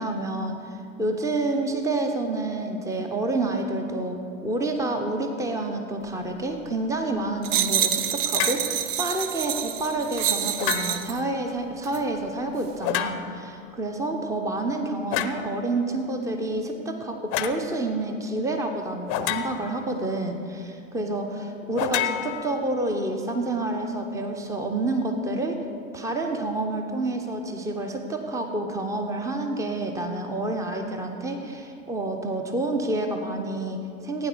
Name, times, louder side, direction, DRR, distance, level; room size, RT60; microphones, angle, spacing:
voice 1, 0.0-25.6 25.9-34.3, right 2 dB, 10° right, 4 dB, 1.0 m, -28 dB
sound 1, 7.4-11.2 11.8-12.0, right 10 dB, 35° right, 0.6 m, -27 dB
sound 2, 8.3-8.7 10.6-11.2 12.8-13.5 15.1-15.5 17.3-17.6 19.1-19.8 21.8-22.9, left 11 dB, 35° left, 0.7 m, -29 dB
16.0 x 9.4 x 4.8 m, 2.5 s
figure-of-eight pair, 80°, 41 cm